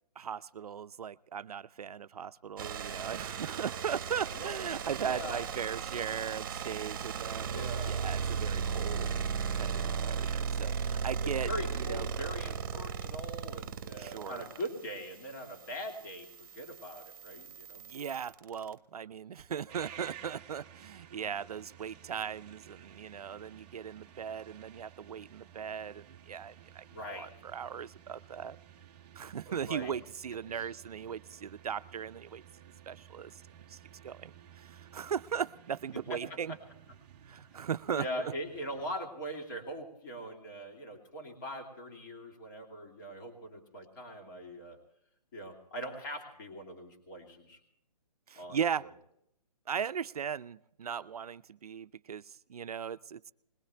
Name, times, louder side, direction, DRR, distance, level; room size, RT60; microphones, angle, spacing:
voice 1, 0.2-9.1 9.6-9.7 10.0-11.5 11.8-12.0 14.0-14.4 17.8-28.6 29.2-32.4 32.9-33.4 33.7-33.8 34.0-36.6 37.3-38.3 48.3-48.9 49.7-53.3, right 7 dB, 65° right, 13 dB, 0.6 m, -38 dB
sound 1, 2.6-18.7, right 6 dB, 30° right, 1.3 m, -36 dB
voice 2, 4.3-4.8 5.0-5.4 7.5-8.0 11.2-17.8 26.9-27.3 29.5-30.0 30.5-30.7 35.9-36.2 37.9-44.8 45.3-47.6 48.4-48.6, equal, 30° left, 2 dB, 2.7 m, -41 dB
sound 2, 19.7-38.9, right 10 dB, 15° right, 0.8 m, -54 dB
21.0 x 19.0 x 3.4 m, 0.75 s
hypercardioid pair, 175°, 20 cm